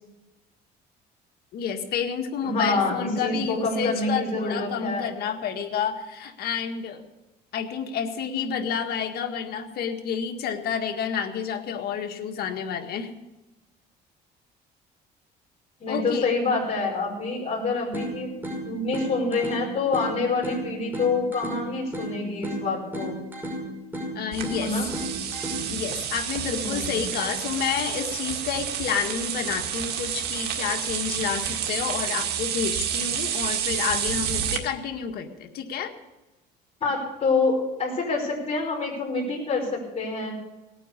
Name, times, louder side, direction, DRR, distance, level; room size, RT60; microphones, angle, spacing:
voice 1, 1.5-7.0 7.5-13.1 15.9-16.3 24.2-24.7 25.7-35.9, left 7 dB, 65° left, 5 dB, 1.9 m, -29 dB
voice 2, 2.4-5.1 15.8-23.2 24.6-24.9 26.6-27.2 36.8-40.3, left 3 dB, 35° left, -3 dB, 5.4 m, -27 dB
sound 1, 17.9-25.9, equal, 10° right, 5.9 m, -35 dB
sound 2, 24.3-34.6, right 9 dB, 75° right, 2.0 m, -29 dB
18.5 x 9.1 x 6.9 m, 1.0 s
cardioid pair, 110°, 17 cm